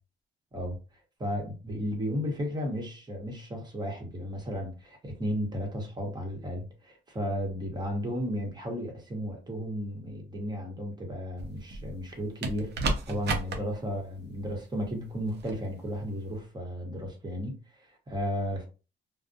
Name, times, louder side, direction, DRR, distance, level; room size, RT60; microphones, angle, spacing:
voice 1, 1.2-18.7, equal, 20° right, 1.0 m, -34 dB
sound 1, 11.4-12.0 12.4-13.6 15.3-15.6, right 3 dB, 55° right, 0.6 m, -32 dB
2.3 x 2.0 x 2.6 m
cardioid pair, 90°, 20 cm